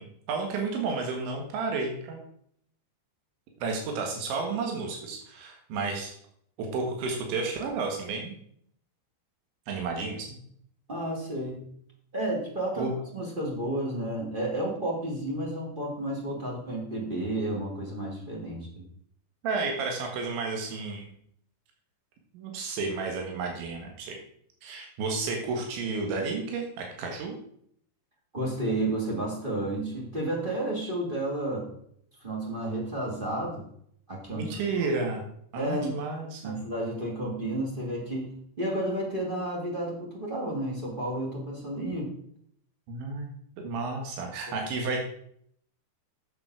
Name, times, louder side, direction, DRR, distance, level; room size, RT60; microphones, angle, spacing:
voice 1, 0.0-2.2 3.6-6.1 6.6-8.4 9.7-10.4 12.8-12.9 19.4-21.1 22.3-24.2 24.6-27.4 34.4-35.2 35.5-36.5 42.9-43.3 43.6-45.1, right 4 dB, 85° right, 2 dB, 4.0 m, -32 dB
voice 2, 10.9-11.7 12.1-18.9 28.3-31.7 32.2-33.6 34.1-34.6 35.5-36.0 36.4-42.1, right 1 dB, 15° right, -1 dB, 1.8 m, -31 dB
10.5 x 7.0 x 6.3 m, 0.67 s
omnidirectional pair, 5.2 m